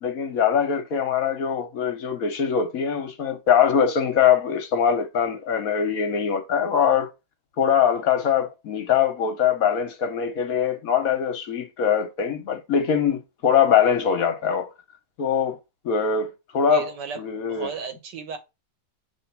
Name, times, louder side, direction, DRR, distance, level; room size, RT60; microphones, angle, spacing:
voice 1, 0.0-7.1 7.6-14.7 15.2-15.6 15.8-16.9 17.2-17.7, left 7 dB, 60° left, 1.1 m, -22 dB
voice 2, 16.7-18.4, right 5 dB, 80° right, 1.6 m, -35 dB
7.0 x 3.1 x 4.5 m
omnidirectional pair, 1.9 m